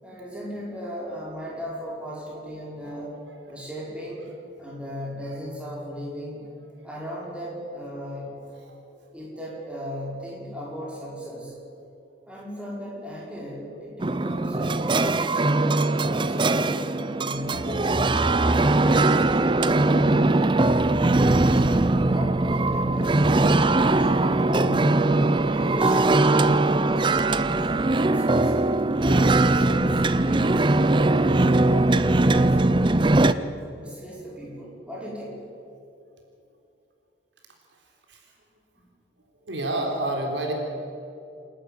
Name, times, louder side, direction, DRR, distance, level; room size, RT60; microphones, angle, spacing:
voice 1, 0.0-3.2 3.5-4.3 4.6-6.4 6.8-8.4 9.1-11.6 12.3-15.9 16.1-18.5 18.8-20.5 20.8-23.5 23.9-28.6 29.0-30.6 31.0-33.3 33.7-35.4 38.8-38.9, equal, 5° right, -5 dB, 5.4 m, -37 dB
sound 1, 14.0-33.3, right 2 dB, 25° right, 0.5 m, -21 dB
voice 2, 39.4-40.5, right 1 dB, 80° right, 1 dB, 3.8 m, -30 dB
27.5 x 12.0 x 9.4 m, 2.6 s
head